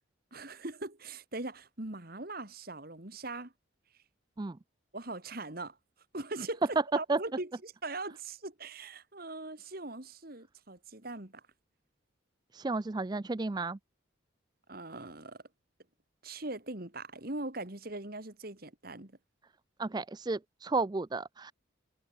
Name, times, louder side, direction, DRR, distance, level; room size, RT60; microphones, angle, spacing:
voice 1, 0.3-3.5 4.9-5.8 6.1-11.4 14.7-15.4 16.2-19.2, right 2 dB, 45° right, 2.3 m, -41 dB
voice 2, 12.5-13.8 19.8-21.5, right 3 dB, 20° right, 0.4 m, -33 dB
head